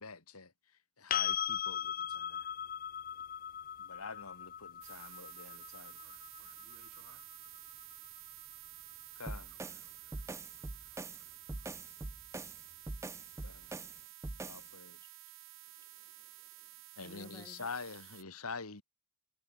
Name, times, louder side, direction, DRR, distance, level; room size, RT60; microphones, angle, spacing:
voice 1, 0.0-2.5 3.8-6.0 9.2-9.5 13.4-13.8 14.4-15.0 17.0-18.8, left 4 dB, 80° left, 2.6 m, -46 dB
sound 1, 1.1-8.9 11.7-11.8, left 9 dB, 40° left, 0.7 m, -39 dB
sound 2, 4.8-18.2, right 17 dB, 60° right, 1.0 m, -52 dB
voice 2, 5.9-7.3 9.5-12.0, right 4 dB, 85° right, 4.9 m, -67 dB
sound 3, 9.3-14.7, right 2 dB, 15° right, 0.3 m, -44 dB
voice 3, 14.6-15.1 15.6-17.7, equal, 10° left, 6.6 m, -59 dB
head